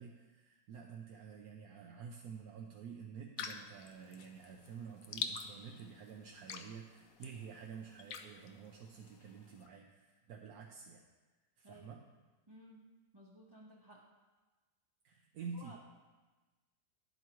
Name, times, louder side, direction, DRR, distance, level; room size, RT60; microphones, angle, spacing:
voice 1, 0.0-11.0 11.6-12.0 15.0-15.8, right 6 dB, 70° right, 1 dB, 1.1 m, -49 dB
sound 1, 3.4-9.7, left 6 dB, 70° left, 0.9 m, -47 dB
voice 2, 11.6-12.0 12.5-12.8 13.1-14.0 15.5-15.8, right 1 dB, 25° right, -5 dB, 0.6 m, -57 dB
10.5 x 8.2 x 3.0 m, 1.2 s
omnidirectional pair, 1.8 m